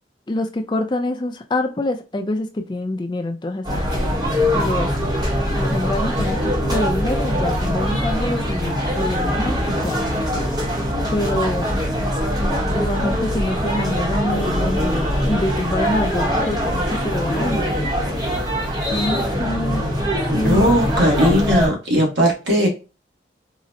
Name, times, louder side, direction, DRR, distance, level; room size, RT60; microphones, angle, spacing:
voice 1, 0.3-3.9 4.5-4.9 5.6-10.0 10.4-10.5 11.1-11.7 12.5-17.6 18.9-19.9 20.3-20.8, left 1 dB, 25° left, 6 dB, 0.4 m, -26 dB
sound 1, 3.6-21.7, equal, 20° right, 0.8 m, -22 dB
voice 2, 20.3-22.7, equal, 85° right, 0 dB, 1.1 m, -18 dB
3.8 x 2.1 x 2.6 m, 0.31 s
head